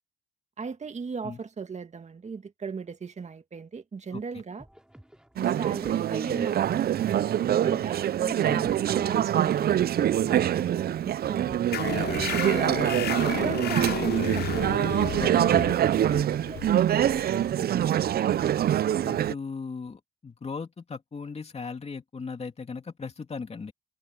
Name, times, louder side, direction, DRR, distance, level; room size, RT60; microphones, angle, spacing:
voice 1, 0.6-4.7 5.4-6.8 7.6-11.6 12.0-12.7 13.4-14.7 15.9-18.0, right 5 dB, 35° right, 2.0 m, -37 dB
voice 2, 4.1-4.4 8.5-8.6 15.2-15.5 19.0-23.7, left 5 dB, 30° left, 2.7 m, -38 dB
sound 1, 4.6-15.9, equal, 5° right, 3.9 m, -53 dB
Conversation / Chatter, 5.4-19.3, right 11 dB, 50° right, 0.5 m, -25 dB
sound 2, 11.7-18.9, left 12 dB, 55° left, 0.4 m, -34 dB
cardioid pair, 90°, 20 cm